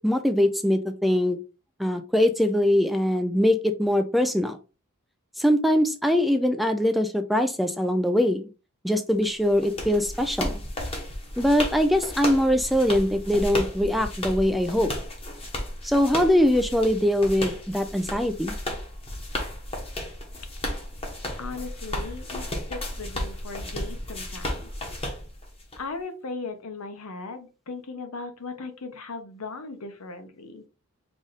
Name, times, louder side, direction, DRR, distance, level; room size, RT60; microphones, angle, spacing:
voice 1, 0.0-1.4 1.8-4.6 5.4-8.5 8.8-10.6 11.4-14.9 15.8-18.5, left 1 dB, ahead, 8 dB, 0.3 m, -22 dB
sound 1, 9.2-25.8, left 1 dB, 25° left, 1.2 m, -34 dB
voice 2, 21.4-24.7 25.8-30.6, left 3 dB, 80° left, 7 dB, 0.9 m, -38 dB
4.8 x 2.6 x 4.0 m, 0.32 s
head